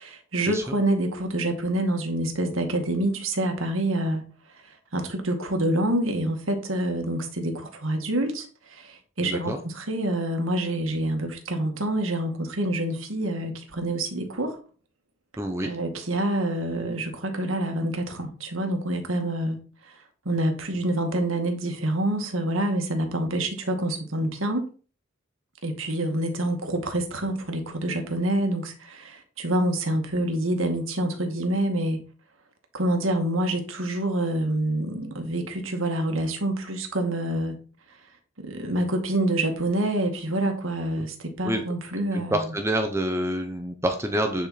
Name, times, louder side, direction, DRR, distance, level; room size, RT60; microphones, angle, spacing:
voice 1, 0.0-4.2 4.5-14.6 15.6-19.6 19.8-24.6 25.6-32.0 32.7-37.6 38.4-42.5, right 1 dB, 90° right, 2.0 m, -27 dB
voice 2, 9.2-9.6 15.4-15.7 41.0-41.1 41.4-41.6 42.1-44.5, right 1 dB, 15° right, 1.0 m, -27 dB
10.5 x 5.4 x 4.3 m
head